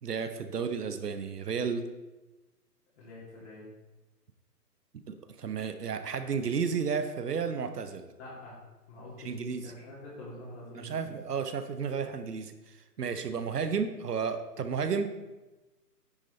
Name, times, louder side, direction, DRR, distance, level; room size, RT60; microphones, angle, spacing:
voice 1, 0.0-1.9 5.1-8.1 9.2-9.7 10.7-15.1, right 6 dB, 70° right, 9 dB, 1.0 m, -32 dB
voice 2, 3.0-3.7 8.2-8.6 8.9-11.2, left 1 dB, 45° left, -8 dB, 3.2 m, -46 dB
10.0 x 6.2 x 4.3 m, 1.1 s
hypercardioid pair, 150°, 48 cm